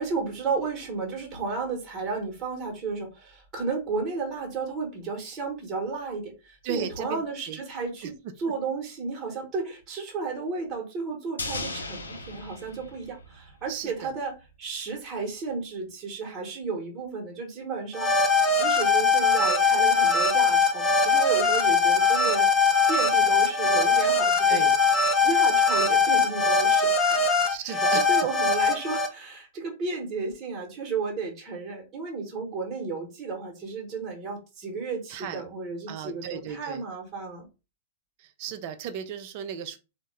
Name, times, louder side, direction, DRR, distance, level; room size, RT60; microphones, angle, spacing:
voice 1, 0.0-24.7 25.2-27.4 27.6-37.5, right 4 dB, 25° right, 1.0 m, -33 dB
voice 2, 6.6-7.6 13.7-14.1 24.5-24.8 27.5-28.0 35.1-35.4 35.9-36.8 38.4-39.8, right 8 dB, 45° right, 0.5 m, -35 dB
sound 1, 11.4-13.8 14.0-14.1, left 2 dB, 80° left, 0.5 m, -37 dB
sound 2, 17.9-29.1, left 4 dB, 20° left, 0.6 m, -21 dB
3.5 x 2.1 x 3.1 m
figure-of-eight pair, 105°, 0 cm